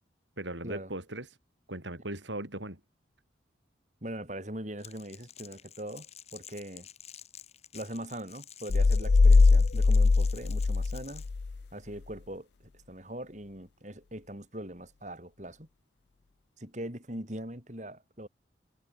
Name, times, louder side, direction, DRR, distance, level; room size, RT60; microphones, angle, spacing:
voice 1, 0.4-1.3 1.7-2.8, right 1 dB, 85° right, 7.5 m, -38 dB
voice 2, 4.0-6.9 7.7-11.2 11.7-15.7 16.6-18.3, right 1 dB, 40° right, 5.9 m, -41 dB
Crackle, 4.8-11.3, left 10 dB, 35° left, 5.1 m, -51 dB
sound 1, 8.7-11.6, left 3 dB, 70° left, 0.5 m, -21 dB
head